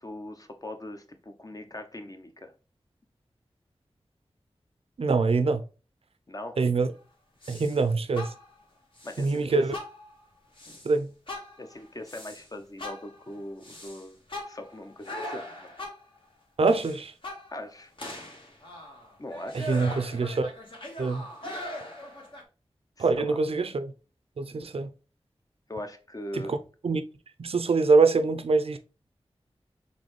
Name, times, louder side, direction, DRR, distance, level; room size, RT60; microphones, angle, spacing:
voice 1, 0.0-2.5 6.3-6.6 9.0-9.6 11.6-14.2 14.4-15.7 17.5-17.9 19.2-19.7 23.0-23.4 25.7-26.5, left 1 dB, 35° left, 0.8 m, -40 dB
voice 2, 5.0-5.6 6.6-6.9 7.5-8.3 9.2-9.7 10.8-11.1 16.6-17.1 19.5-20.5 21.0-21.3 23.0-23.9 24.4-24.9 26.3-26.6 26.8-27.0 27.4-28.8, right 4 dB, 70° right, 0.5 m, -24 dB
sound 1, 7.4-7.8 8.1-8.6 9.0-9.4 9.7-10.2 10.6-10.9 11.3-12.5 12.8-16.2 16.7-17.7 18.0-22.4, left 1 dB, 55° left, 1.4 m, -40 dB
4.1 x 3.5 x 3.2 m
cardioid pair, 45°, 11 cm